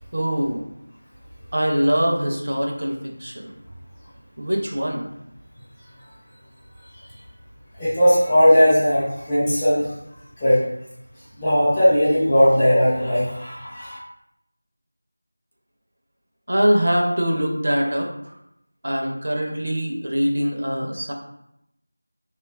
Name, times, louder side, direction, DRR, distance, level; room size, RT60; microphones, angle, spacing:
voice 1, 0.1-0.6 1.5-3.5 4.4-5.1 16.5-18.1 18.8-21.1, equal, 60° right, 1 dB, 0.5 m, -23 dB
voice 2, 7.8-9.8 10.4-10.6 11.4-14.0, equal, 10° left, -11 dB, 0.4 m, -18 dB
2.9 x 2.3 x 2.2 m, 0.81 s
figure-of-eight pair, 180°, 0 cm